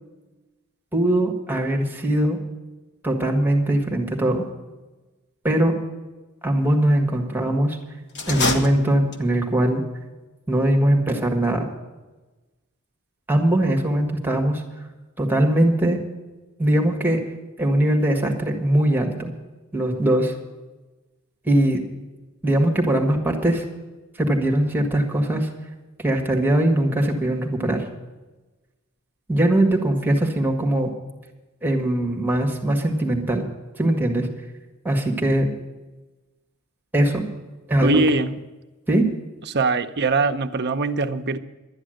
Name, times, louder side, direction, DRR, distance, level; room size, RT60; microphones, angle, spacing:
voice 1, 0.9-2.4 3.0-4.4 5.4-5.7 6.4-7.8 8.3-9.8 10.5-11.7 13.3-14.6 15.2-16.0 16.6-17.2 17.6-19.3 19.7-20.3 21.4-21.8 22.4-23.6 24.2-25.5 26.0-27.9 29.3-30.9 31.6-33.5 33.8-34.3 34.8-35.5 36.9-37.3 37.7-38.0 38.9-39.1, right 1 dB, 10° right, 1 dB, 1.8 m, -21 dB
sound 1, 8.1-9.5, left 2 dB, 55° left, 1.5 m, -26 dB
voice 2, 37.8-38.3 39.5-41.4, right 3 dB, 50° right, 8 dB, 0.7 m, -21 dB
12.0 x 9.8 x 7.8 m, 1.1 s
head